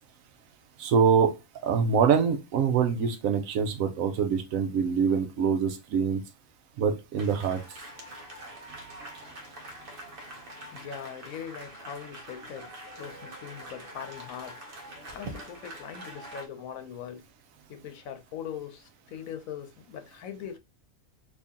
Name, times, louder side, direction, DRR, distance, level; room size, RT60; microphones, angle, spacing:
voice 1, 0.8-1.3 1.6-6.2 6.8-7.6, right 6 dB, 80° right, 1.1 m, -24 dB
sound 1, 7.2-16.5, right 1 dB, 45° right, 0.9 m, -44 dB
voice 2, 10.7-12.7 13.0-14.7 15.1-17.2 17.7-20.6, left 8 dB, 85° left, 1.1 m, -41 dB
3.0 x 2.7 x 3.5 m
omnidirectional pair, 1.4 m